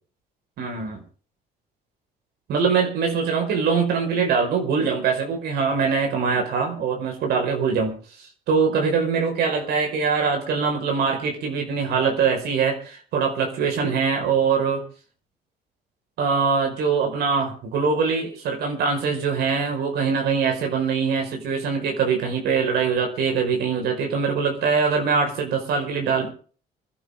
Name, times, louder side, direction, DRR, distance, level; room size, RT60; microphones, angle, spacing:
voice 1, 0.6-1.0 2.5-14.8 16.2-26.3, right 5 dB, 70° right, 2 dB, 5.1 m, -23 dB
25.0 x 11.5 x 3.7 m, 0.41 s
cardioid pair, 110°, 17 cm